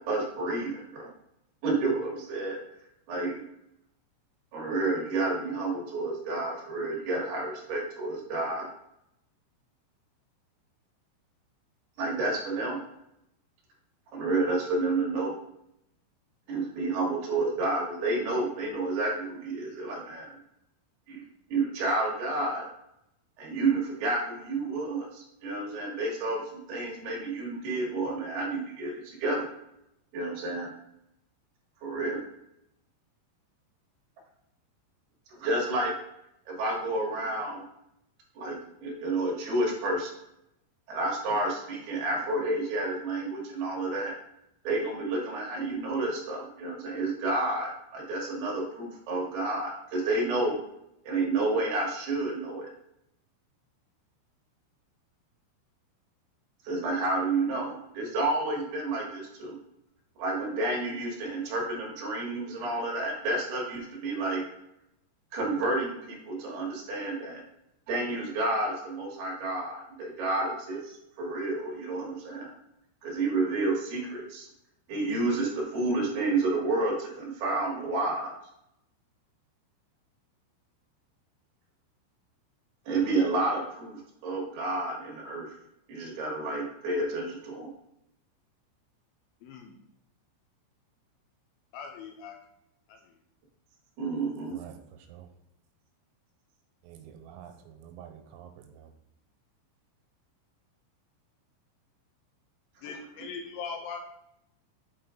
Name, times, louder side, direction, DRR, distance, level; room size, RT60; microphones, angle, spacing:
voice 1, 0.1-1.1 1.6-2.6 3.1-3.4 4.5-8.7 12.0-12.8 14.1-15.3 16.5-20.4 21.1-21.2 21.5-22.7 23.4-29.5 30.1-30.7 31.8-32.2 35.3-35.9 36.5-37.6 38.4-40.1 40.9-44.1 44.6-50.6 51.0-52.7 56.6-59.6 60.2-64.4 65.3-67.4 67.9-72.5 73.0-74.5 74.9-78.3 82.9-85.5 85.9-87.7 94.0-94.6, right 2 dB, 65° right, -3 dB, 3.0 m, -30 dB
voice 2, 89.4-89.7 91.7-92.4 92.9-93.0 102.8-104.0, left 5 dB, 85° left, 3 dB, 2.9 m, -40 dB
voice 3, 94.5-95.3 96.8-98.9, right 9 dB, 90° right, 5 dB, 3.5 m, -48 dB
8.6 x 4.3 x 3.7 m, 0.81 s
omnidirectional pair, 5.9 m